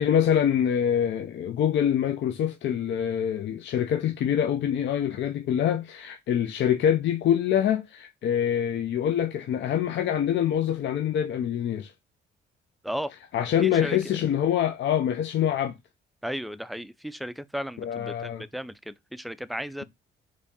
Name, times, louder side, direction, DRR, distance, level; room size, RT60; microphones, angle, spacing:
voice 1, 0.0-11.9 13.3-15.7 17.8-18.4, left 9 dB, 65° left, 0.6 m, -25 dB
voice 2, 13.6-14.2 16.2-19.8, equal, ahead, 0.3 m, -35 dB
4.1 x 3.1 x 3.5 m
cardioid pair, 90°, 20 cm